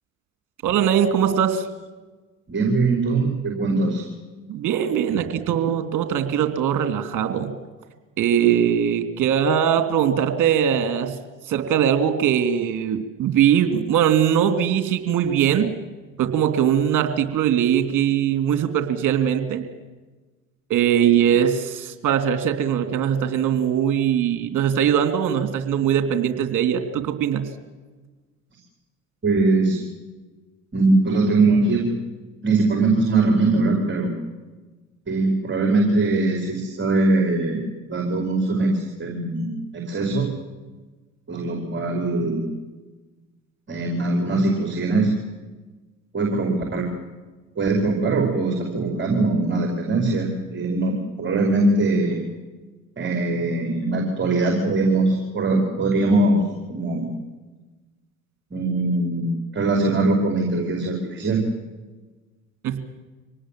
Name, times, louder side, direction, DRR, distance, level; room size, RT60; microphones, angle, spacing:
voice 1, 0.6-1.7 4.5-7.5 8.2-11.1 11.5-15.7 16.2-19.6 20.7-27.5 62.6-62.8, right 9 dB, 50° right, 8 dB, 3.1 m, -21 dB
voice 2, 2.5-4.1 29.2-29.8 30.7-31.9 32.4-34.1 35.1-37.6 37.9-40.3 41.3-42.5 43.7-45.1 46.1-46.9 47.6-52.2 53.0-56.4 56.7-57.1 58.5-59.3 59.5-61.4, right 2 dB, 30° right, 2 dB, 5.2 m, -21 dB
25.5 x 19.0 x 7.8 m, 1.3 s
hypercardioid pair, 65°, 40 cm